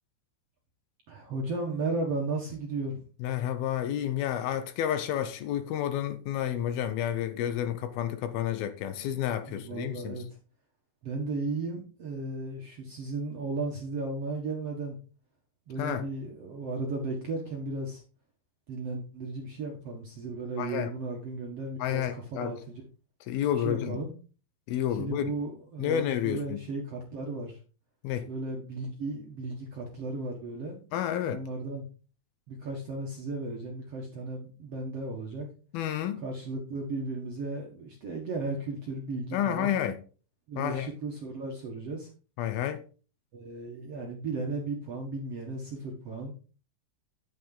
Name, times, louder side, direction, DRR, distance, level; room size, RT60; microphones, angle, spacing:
voice 1, 1.1-3.0 9.5-10.3 11.0-15.0 15.7-18.0 18.7-22.8 23.6-24.1 25.0-27.6 28.3-30.8 31.2-31.9 32.5-35.5 36.2-39.7 40.5-42.1 43.3-46.3, right 3 dB, 55° right, 1.7 m, -35 dB
voice 2, 3.2-10.2 15.8-16.0 20.6-20.9 21.8-22.6 23.3-24.0 24.7-25.3 25.8-26.6 28.0-28.3 30.9-31.4 35.7-36.2 39.3-40.0 40.6-40.9 42.4-42.8, left 10 dB, 75° left, 2.5 m, -30 dB
10.5 x 7.0 x 3.8 m
omnidirectional pair, 4.6 m